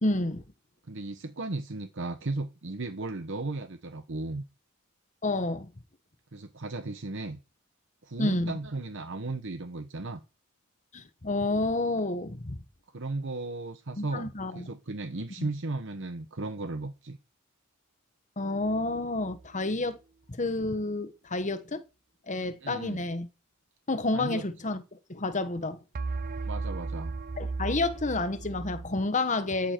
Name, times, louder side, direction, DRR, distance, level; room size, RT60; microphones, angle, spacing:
voice 1, 0.0-0.4 5.2-5.7 8.2-8.5 10.9-12.6 14.0-14.7 15.4-15.5 18.4-20.0 20.3-21.8 22.3-23.3 23.9-24.8 25.1-25.8 27.4-29.7, left 2 dB, 35° left, 1.1 m, -29 dB
voice 2, 0.9-4.4 6.3-7.4 8.0-10.2 12.9-17.2 22.6-23.0 24.1-24.4 26.4-27.2, right 2 dB, 60° right, 1.0 m, -35 dB
sound 1, 18.6-19.5 26.0-29.0, right 3 dB, 40° right, 0.5 m, -36 dB
12.0 x 10.0 x 4.5 m
head